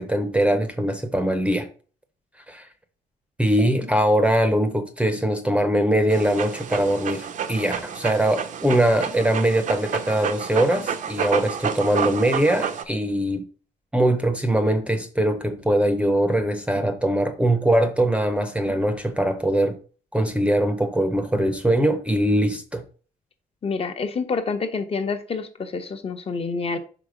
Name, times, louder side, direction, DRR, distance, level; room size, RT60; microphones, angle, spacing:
voice 1, 0.0-1.7 2.5-2.7 3.4-13.4 13.9-19.8 20.1-22.8, right 1 dB, 10° right, 0.8 m, -22 dB
Dog, 6.1-12.8, right 7 dB, 55° right, 0.8 m, -29 dB
voice 2, 23.6-26.8, left 4 dB, 40° left, 1.1 m, -27 dB
5.6 x 5.2 x 5.0 m
cardioid pair, 100°, 15 cm